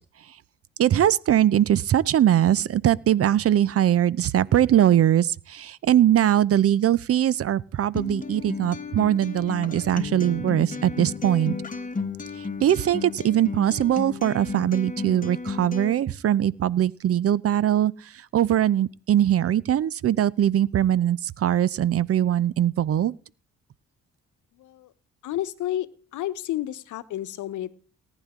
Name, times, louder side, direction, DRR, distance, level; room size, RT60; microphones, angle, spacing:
voice 1, 0.8-11.6 12.6-17.9 18.3-23.2, right 11 dB, 50° right, 0.6 m, -21 dB
Acoustic guitar, 7.9-15.9, left 4 dB, 25° left, 1.3 m, -33 dB
voice 2, 24.5-24.9 25.2-25.9 26.1-27.7, left 13 dB, 80° left, 1.0 m, -31 dB
18.5 x 10.0 x 3.7 m
cardioid pair, 90°, 30 cm